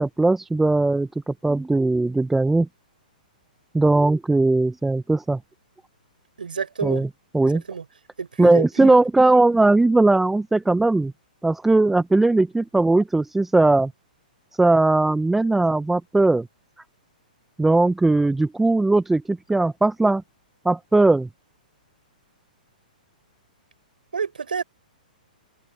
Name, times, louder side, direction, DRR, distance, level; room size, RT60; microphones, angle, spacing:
voice 1, 0.0-2.7 3.7-5.4 6.8-7.1 7.3-7.6 8.4-11.1 11.4-13.9 14.5-16.5 17.6-20.2 20.6-21.3, right 2 dB, 5° right, 0.5 m, -19 dB
voice 2, 6.4-7.0 7.4-7.8 8.2-9.0 24.1-24.6, right 6 dB, 85° right, 4.6 m, -29 dB
hypercardioid pair, 130°, 5 cm